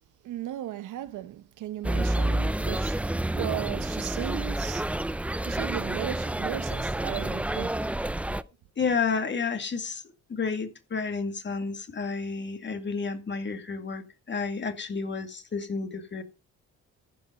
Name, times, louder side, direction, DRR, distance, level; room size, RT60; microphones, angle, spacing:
voice 1, 0.2-3.0 3.3-4.9 5.4-7.9, right 13 dB, 80° right, 1.0 m, -36 dB
sound 1, 1.8-8.4, right 1 dB, 5° right, 0.5 m, -29 dB
voice 2, 8.8-10.0 10.3-16.2, left 5 dB, 40° left, 2.2 m, -31 dB
14.5 x 5.5 x 5.3 m
cardioid pair, 90°, 30 cm